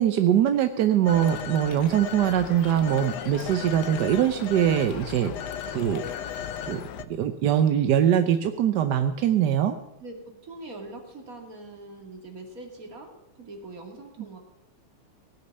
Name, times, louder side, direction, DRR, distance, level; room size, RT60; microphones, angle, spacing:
voice 1, 0.0-5.3 5.7-6.0 6.7-6.8 7.1-9.8, right 10 dB, 65° right, 9 dB, 1.1 m, -22 dB
Telephone, 1.1-7.1, left 9 dB, 70° left, 1.0 m, -36 dB
voice 2, 10.4-14.4, right 2 dB, 40° right, 3 dB, 2.7 m, -42 dB
18.0 x 6.5 x 9.0 m, 0.88 s
omnidirectional pair, 2.4 m